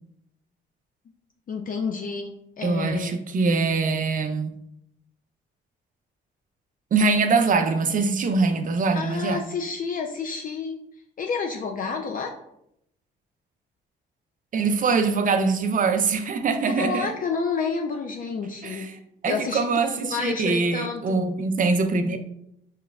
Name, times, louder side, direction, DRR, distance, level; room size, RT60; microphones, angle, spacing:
voice 1, 1.5-3.2 8.9-10.8 11.2-12.3 16.7-18.9 19.3-21.2, left 5 dB, 45° left, 0.5 m, -30 dB
voice 2, 2.6-4.5 6.9-9.4 14.5-17.1 18.6-18.9 19.2-22.2, right 4 dB, 45° right, 0.6 m, -23 dB
5.8 x 3.0 x 2.3 m
cardioid pair, 90°, 20 cm